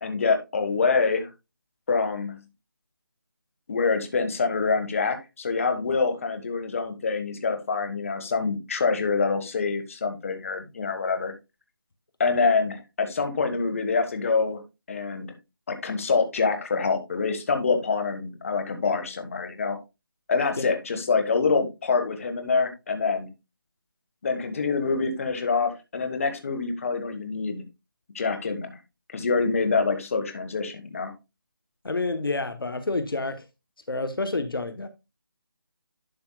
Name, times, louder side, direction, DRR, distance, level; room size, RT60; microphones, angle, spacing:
voice 1, 0.0-1.3 1.9-2.4 3.7-11.3 12.2-14.6 14.9-15.3 15.7-19.8 20.3-23.3 24.2-27.6 28.1-28.8 29.1-31.1, left 4 dB, 35° left, 1.6 m, -26 dB
voice 2, 31.8-33.5 33.9-34.9, left 3 dB, 75° left, 1.1 m, -28 dB
11.5 x 5.9 x 2.3 m
figure-of-eight pair, 165°, 12 cm